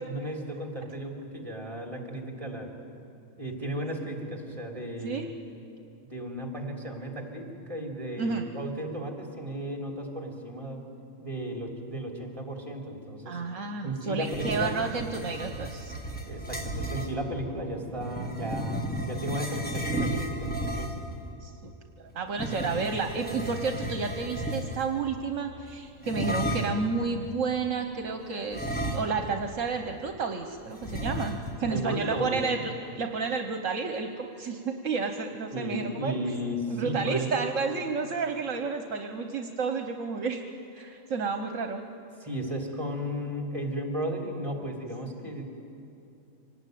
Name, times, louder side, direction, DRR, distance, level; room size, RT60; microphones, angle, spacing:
voice 1, 0.0-2.7 3.4-5.3 6.0-10.8 11.2-13.4 13.8-14.7 16.3-20.9 31.6-32.4 35.5-37.3 42.2-45.5, right 1 dB, 25° right, 1 dB, 3.3 m, -34 dB
voice 2, 13.3-16.0 21.4-21.7 22.0-36.1 36.7-40.4 40.7-41.8, right 4 dB, 70° right, 5 dB, 1.4 m, -31 dB
sound 1, 14.2-17.1 18.0-21.1 22.3-25.0 26.0-26.9 28.5-29.4 29.7-29.8 30.8-31.7, equal, 5° left, 1.8 m, -33 dB
25.0 x 19.0 x 9.3 m, 2.7 s
omnidirectional pair, 1.4 m